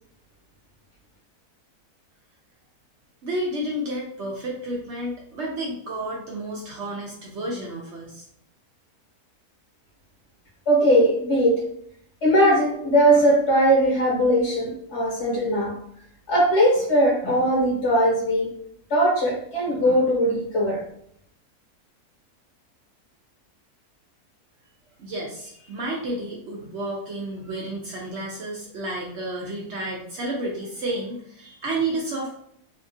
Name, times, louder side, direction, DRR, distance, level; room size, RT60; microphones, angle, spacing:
voice 1, 3.2-8.2 25.0-32.4, right 1 dB, 65° right, -2 dB, 0.7 m, -31 dB
voice 2, 10.7-11.5 12.2-15.7 16.3-18.5 18.9-20.8, equal, 55° left, -3 dB, 1.0 m, -20 dB
2.8 x 2.3 x 2.5 m, 0.70 s
omnidirectional pair, 1.6 m